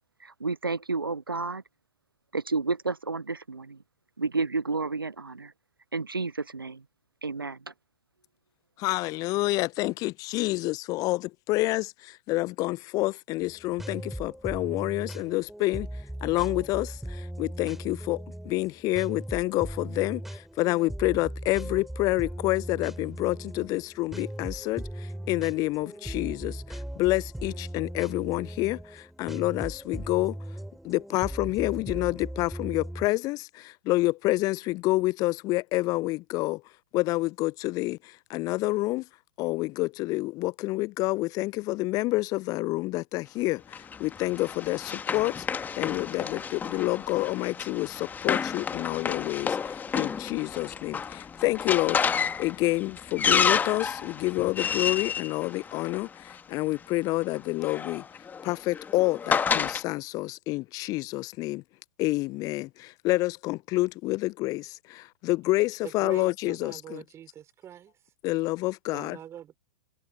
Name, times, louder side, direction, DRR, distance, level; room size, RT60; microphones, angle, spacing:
voice 1, 0.2-1.6 2.3-3.8 4.2-5.5 5.9-6.8 7.2-7.7, right 3 dB, 80° right, 0.9 m, -31 dB
voice 2, 8.8-15.9 16.2-30.4 30.8-36.6 36.9-39.1 39.4-45.5 45.7-52.1 52.4-58.0 58.4-61.6 62.0-67.0 68.2-69.2, left 20 dB, 30° left, 0.7 m, -28 dB
sound 1, 13.4-33.1, right 1 dB, ahead, 6.1 m, -38 dB
Run, 43.7-56.4 57.4-59.8, left 6 dB, 15° left, 1.9 m, -30 dB
voice 3, 65.8-67.9 68.9-69.6, right 10 dB, 25° right, 5.5 m, -43 dB
figure-of-eight pair, 100°, 12 cm